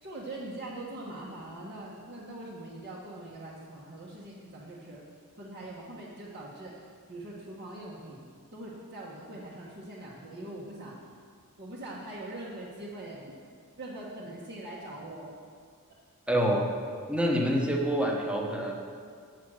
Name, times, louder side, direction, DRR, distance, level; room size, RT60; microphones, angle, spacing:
voice 1, 0.0-5.0 5.4-8.2 8.5-11.0 11.6-13.4 13.8-15.3, right 1 dB, 50° right, -8 dB, 1.3 m, -42 dB
voice 2, 16.3-16.7 17.1-18.7, equal, 5° right, 0 dB, 0.9 m, -26 dB
8.1 x 6.2 x 6.4 m, 2.1 s
head